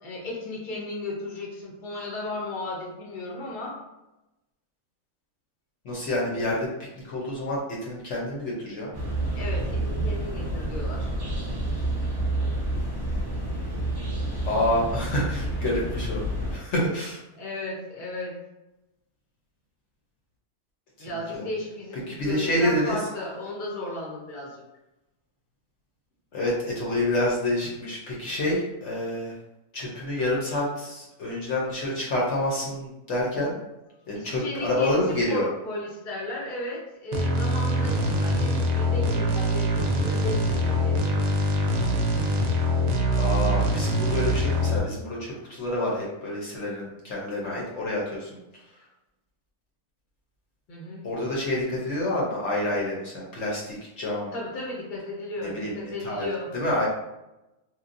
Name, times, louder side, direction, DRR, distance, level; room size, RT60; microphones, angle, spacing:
voice 1, 0.0-3.8 9.3-11.1 17.4-18.4 21.0-24.6 34.1-41.3 50.7-51.1 54.3-56.5, left 2 dB, 45° left, -3 dB, 0.8 m, -35 dB
voice 2, 5.8-6.7 7.0-8.9 14.4-16.2 16.5-17.2 21.1-21.5 22.1-23.0 26.3-29.4 29.7-33.5 34.1-35.5 43.1-48.4 51.0-54.3 55.4-56.3 56.5-56.9, left 1 dB, 65° left, -4 dB, 1.0 m, -28 dB
sound 1, 8.9-16.6, right 1 dB, 30° right, 0.5 m, -29 dB
sound 2, 37.1-44.8, equal, 65° right, 0.7 m, -24 dB
3.0 x 2.3 x 2.5 m, 0.95 s
omnidirectional pair, 1.4 m